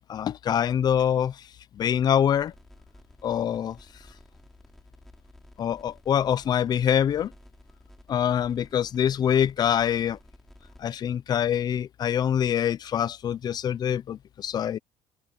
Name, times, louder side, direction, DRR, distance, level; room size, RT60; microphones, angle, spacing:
voice 1, 0.1-1.5 1.7-2.5 3.2-3.8 5.6-7.3 8.1-10.2 10.8-14.8, left 9 dB, 35° left, 0.6 m, -25 dB
sound 1, 2.3-10.9, left 1 dB, 5° left, 4.1 m, -53 dB
cardioid pair, 155°, 12 cm